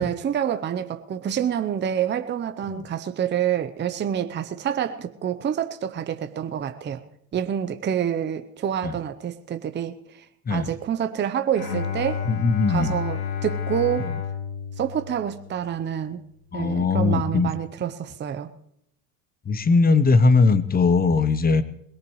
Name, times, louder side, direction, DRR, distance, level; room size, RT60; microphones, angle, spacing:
voice 1, 0.0-7.0 7.3-10.2 10.5-12.3 12.7-14.1 14.8-16.2 16.5-18.5, right 9 dB, 25° right, 0.7 m, -27 dB
Bowed string instrument, 11.6-15.7, left 7 dB, 80° left, 2.8 m, -30 dB
voice 2, 12.3-12.9 16.5-17.5 19.5-21.6, left 4 dB, 20° left, 0.9 m, -20 dB
21.5 x 18.0 x 3.2 m
supercardioid pair, 95°, 46 cm